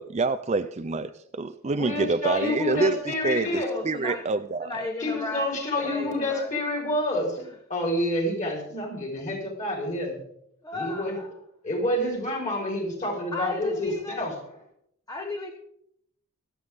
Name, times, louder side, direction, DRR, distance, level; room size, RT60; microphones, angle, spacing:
voice 1, 0.0-4.9, right 3 dB, 30° right, 11 dB, 0.4 m, -27 dB
voice 2, 1.6-3.7 5.0-7.4 7.7-10.2 10.7-11.2 11.6-14.3, left 1 dB, 35° left, 0 dB, 4.1 m, -28 dB
voice 3, 3.6-4.2 4.6-5.5 5.9-6.6 7.4-7.5 10.6-11.3 13.3-14.3 15.1-15.5, left 2 dB, 15° left, 3 dB, 1.0 m, -34 dB
24.5 x 8.3 x 3.5 m, 0.72 s
head